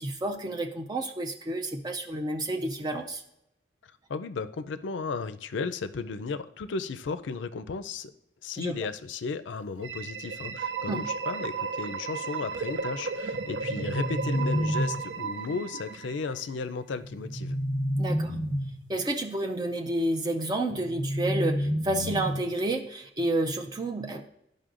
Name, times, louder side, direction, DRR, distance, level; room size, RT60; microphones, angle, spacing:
voice 1, 0.0-3.2 8.6-8.8 10.9-11.1 18.0-18.4 18.9-24.3, right 1 dB, 20° right, 4 dB, 0.4 m, -30 dB
voice 2, 4.1-8.1 8.4-17.6, left 4 dB, 85° left, 12 dB, 0.4 m, -34 dB
sound 1, 9.8-16.6, right 5 dB, 80° right, 0.6 m, -34 dB
sound 2, 13.3-15.3 17.0-18.9 20.7-22.7, equal, 55° right, 1.3 m, -30 dB
12.5 x 5.3 x 2.5 m, 0.82 s
head